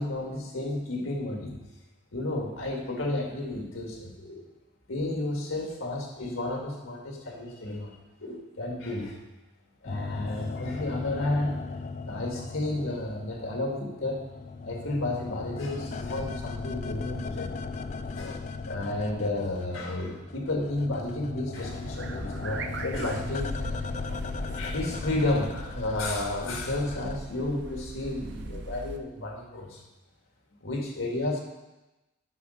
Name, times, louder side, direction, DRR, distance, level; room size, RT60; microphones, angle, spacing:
voice 1, 0.0-1.6 2.1-4.5 4.9-9.2 9.8-11.6 12.1-14.3 14.6-17.5 18.2-23.7 24.6-29.8 30.6-31.4, left 2 dB, 85° left, 0 dB, 1.8 m, -32 dB
sound 1, 9.8-13.6 13.9-19.9 20.1-27.2, left 4 dB, 35° left, 0.3 m, -37 dB
sound 2, 21.5-29.0, right 2 dB, 60° right, 0.6 m, -40 dB
8.5 x 5.7 x 5.1 m, 1.0 s
head